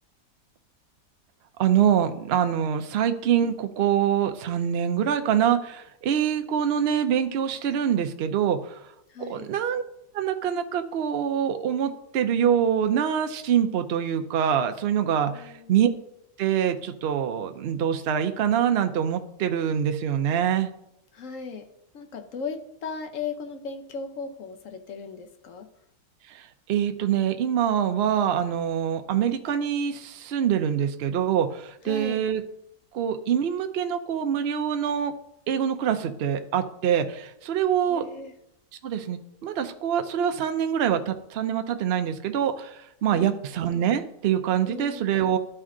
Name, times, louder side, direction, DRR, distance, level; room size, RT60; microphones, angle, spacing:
voice 1, 1.6-8.8 9.3-9.8 10.1-15.9 16.4-20.7 26.3-26.4 26.7-32.4 32.9-35.1 35.5-38.0 38.8-45.4, right 9 dB, 65° right, 7 dB, 0.6 m, -25 dB
voice 2, 9.1-9.5 15.3-15.9 21.1-21.7 21.9-25.7 31.9-32.2 37.9-38.3 43.1-43.4 44.6-45.1, left 5 dB, 60° left, 6 dB, 1.0 m, -37 dB
12.0 x 4.4 x 3.7 m, 0.79 s
omnidirectional pair, 1.8 m